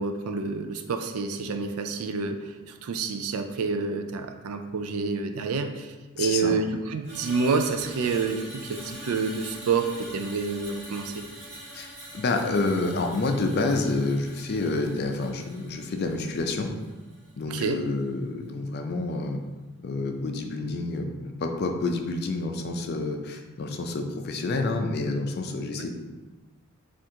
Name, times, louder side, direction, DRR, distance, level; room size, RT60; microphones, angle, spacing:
voice 1, 0.0-2.4 2.8-11.2 17.5-17.8 25.8-25.9, right 4 dB, 80° right, 6 dB, 0.4 m, -28 dB
voice 2, 6.2-6.5 11.7-16.7 17.4-19.4 19.8-25.9, left 3 dB, 50° left, 4 dB, 0.4 m, -28 dB
Screech, 7.0-17.4 17.7-18.0, equal, 35° right, 1.3 m, -44 dB
4.3 x 2.5 x 3.7 m, 1.2 s
head